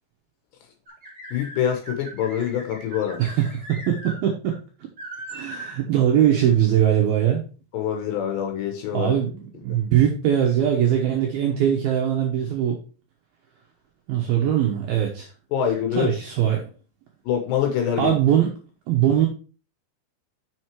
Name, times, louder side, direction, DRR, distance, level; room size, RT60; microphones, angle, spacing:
sound 1, 0.9-4.2 4.5-4.6 5.0-5.7, right 1 dB, 10° right, 2.9 m, -39 dB
voice 1, 1.3-3.2 7.7-9.1 9.7-9.8 15.5-16.1 17.3-18.2, left 9 dB, 70° left, 5 dB, 2.9 m, -25 dB
voice 2, 3.7-4.5 5.3-7.4 8.9-12.8 14.1-15.3 16.0-16.7 18.0-18.5 18.9-19.3, right 10 dB, 75° right, 0 dB, 2.3 m, -21 dB
6.6 x 6.3 x 4.6 m, 0.35 s
omnidirectional pair, 5.7 m